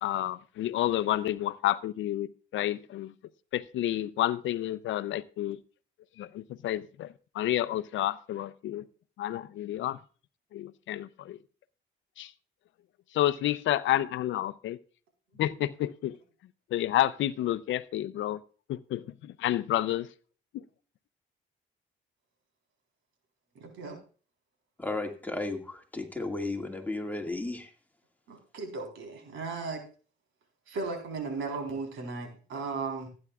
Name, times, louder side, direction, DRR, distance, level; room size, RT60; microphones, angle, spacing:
voice 1, 0.0-3.1 3.5-5.6 6.2-8.8 9.2-10.0 10.5-11.4 12.2-12.3 13.1-14.8 15.4-16.2 16.7-18.4 18.7-20.1 20.5-20.6, left 13 dB, 75° left, 0.6 m, -30 dB
voice 2, 23.5-24.0 28.3-29.8 30.7-33.1, right 4 dB, 85° right, 4.0 m, -36 dB
voice 3, 24.8-27.7, left 2 dB, 10° left, 2.0 m, -34 dB
15.5 x 9.7 x 2.4 m
cardioid pair, 90°, 20 cm